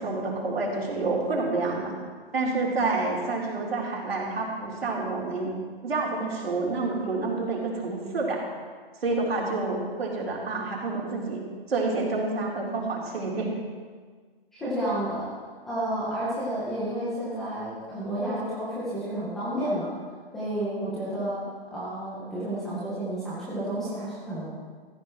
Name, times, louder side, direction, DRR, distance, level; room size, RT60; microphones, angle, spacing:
voice 1, 0.0-1.9 2.3-5.5 5.8-8.5 9.0-13.5 14.6-14.7, right 3 dB, 75° right, -3 dB, 4.1 m, -28 dB
voice 2, 14.5-15.3 15.7-19.9 20.3-21.4 21.7-24.5, right 1 dB, ahead, -10 dB, 0.4 m, -31 dB
15.5 x 14.5 x 3.2 m, 1.5 s
hypercardioid pair, 160°, 30 cm